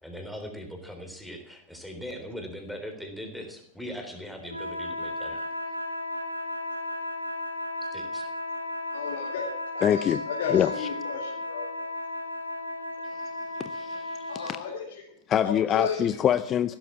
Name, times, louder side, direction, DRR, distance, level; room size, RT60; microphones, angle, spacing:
voice 1, 0.0-5.5 7.8-8.3, equal, ahead, 4 dB, 3.7 m, -40 dB
sound 1, 4.4-14.7, left 2 dB, 90° right, 2.0 m, -34 dB
voice 2, 8.9-9.4 9.7-11.6 14.3-15.1 15.4-16.2, left 7 dB, 55° left, -1 dB, 3.0 m, -34 dB
voice 3, 9.8-10.2 10.5-10.9 13.6-14.6 15.3-16.8, left 10 dB, 30° left, 14 dB, 0.6 m, -25 dB
16.0 x 12.0 x 7.4 m, 0.70 s
figure-of-eight pair, 90°, 0 cm